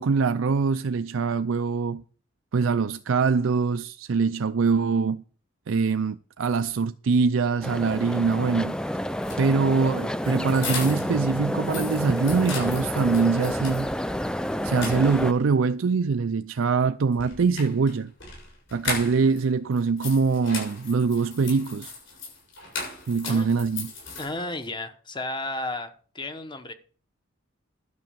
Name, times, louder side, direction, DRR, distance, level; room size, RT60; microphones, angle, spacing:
voice 1, 0.0-2.0 2.5-5.2 5.7-8.7 9.4-13.9 14.6-18.1 18.7-21.9 23.1-23.9, right 5 dB, 75° right, 0.5 m, -23 dB
sound 1, 7.6-15.3, equal, 5° left, 0.4 m, -29 dB
sound 2, 9.2-11.2 11.5-13.9 14.2-14.3 14.7-15.5 17.1-19.4 19.7-24.6, left 4 dB, 65° left, 6.7 m, -37 dB
voice 2, 24.2-26.7, left 2 dB, 25° left, 1.0 m, -33 dB
12.0 x 6.1 x 7.0 m
head